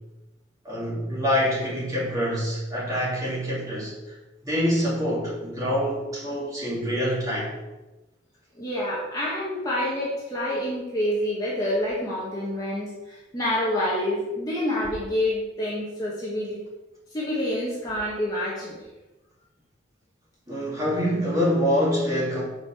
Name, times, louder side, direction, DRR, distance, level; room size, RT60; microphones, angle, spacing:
voice 1, 0.6-4.1 4.4-7.5 20.5-22.4, equal, 20° right, -7 dB, 2.6 m, -25 dB
voice 2, 8.6-16.6 17.1-18.8, left 1 dB, 20° left, -6 dB, 1.4 m, -27 dB
5.4 x 5.0 x 6.1 m, 1.1 s
head